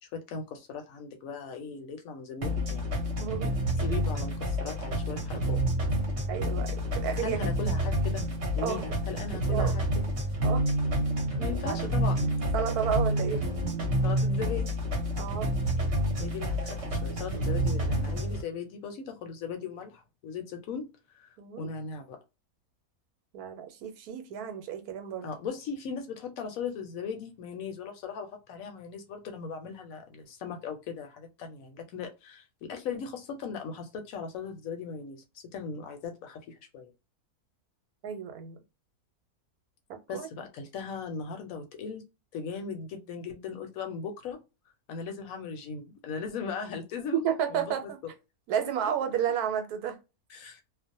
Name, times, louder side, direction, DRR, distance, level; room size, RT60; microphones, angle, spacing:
voice 1, 0.0-2.9 3.8-5.6 7.2-8.2 8.6-9.8 11.4-12.4 14.0-14.7 16.2-20.9 21.1-21.3 21.6-22.2 25.2-36.9 40.1-42.1 42.3-44.4 44.9-47.2 47.5-47.9 50.3-50.6, left 5 dB, 70° left, 1.0 m, -38 dB
sound 1, 2.4-18.4, equal, 55° right, 0.9 m, -29 dB
voice 2, 3.2-3.5 6.3-7.4 8.6-8.8 9.3-9.8 10.4-10.7 11.6-11.8 12.5-13.4 15.1-15.5 21.4-21.7 23.3-25.3 38.0-38.6 40.1-40.3 47.1-48.0 48.5-50.0, right 8 dB, 80° right, 1.1 m, -31 dB
2.5 x 2.1 x 2.6 m
omnidirectional pair, 1.6 m